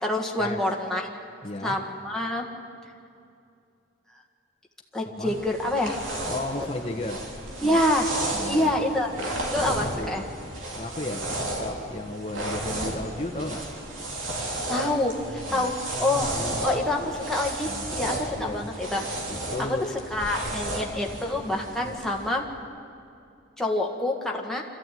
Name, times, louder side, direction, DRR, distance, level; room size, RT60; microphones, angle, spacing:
voice 1, 0.0-1.0 1.6-2.4 4.9-6.0 7.6-8.1 8.4-9.1 9.5-10.2 14.7-19.0 20.1-22.5 23.6-24.6, left 1 dB, ahead, -1 dB, 1.7 m, -27 dB
voice 2, 1.4-1.8 5.2-5.3 6.3-7.3 8.3-8.7 9.2-9.4 9.8-10.3 10.8-13.6 14.8-14.9 15.2-16.7 17.6-18.7 19.3-19.9 21.8-21.9, left 2 dB, 30° left, 1 dB, 1.1 m, -35 dB
sound 1, 5.3-22.3, right 1 dB, 90° right, 3.2 m, -33 dB
25.5 x 14.5 x 9.3 m, 2.5 s
head